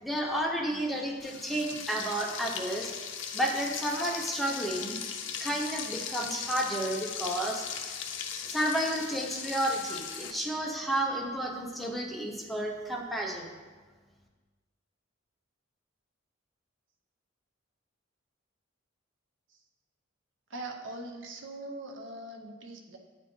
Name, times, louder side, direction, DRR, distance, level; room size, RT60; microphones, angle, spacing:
voice 1, 0.0-2.9 3.3-5.0 5.4-7.7 8.5-13.5, right 1 dB, ahead, 0 dB, 0.6 m, -31 dB
Frying (food), 1.2-10.3, left 7 dB, 75° left, 0.6 m, -38 dB
voice 2, 20.5-23.0, right 2 dB, 70° right, 3 dB, 0.7 m, -41 dB
8.8 x 4.2 x 3.1 m, 1.4 s
head